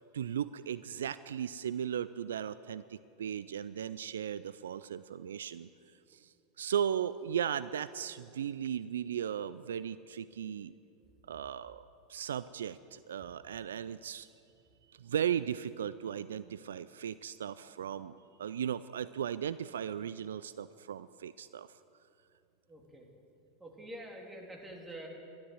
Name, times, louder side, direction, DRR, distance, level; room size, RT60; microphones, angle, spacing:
voice 1, 0.0-5.7 6.1-10.7 11.3-11.8 12.1-14.3 14.9-21.7, right 9 dB, 80° right, 16 dB, 0.3 m, -36 dB
voice 2, 22.7-23.1 23.6-25.1, right 1 dB, 15° right, 0 dB, 3.2 m, -46 dB
12.5 x 12.0 x 7.9 m, 2.8 s
hypercardioid pair, 90°, 0 cm